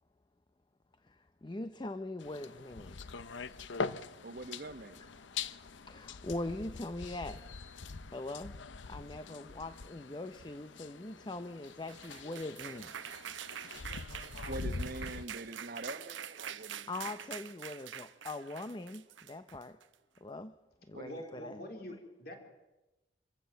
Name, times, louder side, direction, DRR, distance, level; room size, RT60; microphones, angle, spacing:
voice 1, 1.1-3.0 5.2-7.4 8.1-8.5 8.9-12.9 16.6-19.8 20.2-20.5 20.9-21.6, left 2 dB, 25° left, 10 dB, 0.6 m, -42 dB
sound 1, 2.2-15.3, left 4 dB, 75° left, 0.7 m, -43 dB
voice 2, 4.2-5.1 13.6-13.7 14.5-16.9 20.9-21.2, right 2 dB, 50° right, 10 dB, 1.2 m, -44 dB
sound 2, 11.7-19.9, right 9 dB, 80° right, 0.8 m, -45 dB
voice 3, 21.1-22.3, left 1 dB, 55° left, 3 dB, 3.9 m, -45 dB
25.5 x 15.0 x 7.7 m, 1.0 s
head